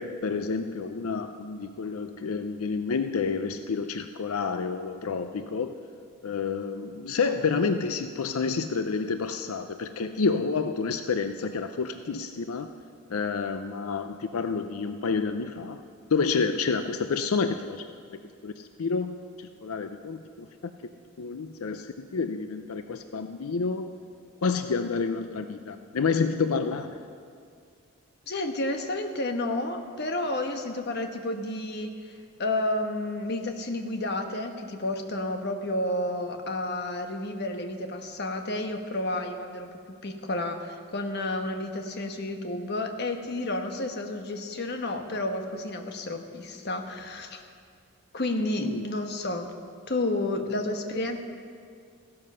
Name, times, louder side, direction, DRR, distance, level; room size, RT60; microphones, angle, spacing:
voice 1, 0.0-5.8 6.2-12.7 13.1-15.8 16.1-17.8 18.4-20.5 21.2-23.9 24.4-27.0 48.6-48.8, left 5 dB, 85° left, 8 dB, 0.5 m, -29 dB
voice 2, 28.3-47.4 48.1-49.5 49.9-51.2, left 1 dB, 50° left, 5 dB, 1.2 m, -31 dB
15.5 x 12.5 x 5.5 m, 2.3 s
head